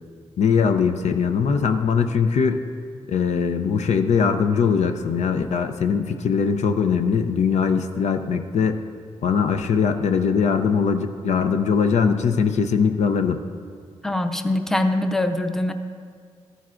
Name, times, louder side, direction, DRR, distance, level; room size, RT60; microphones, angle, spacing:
voice 1, 0.4-2.6 3.1-8.8 9.2-13.4, left 6 dB, 70° left, 7 dB, 0.5 m, -21 dB
voice 2, 14.0-15.7, left 1 dB, 5° left, 7 dB, 0.6 m, -23 dB
13.0 x 9.1 x 2.5 m, 2.1 s
cardioid pair, 60°, 12 cm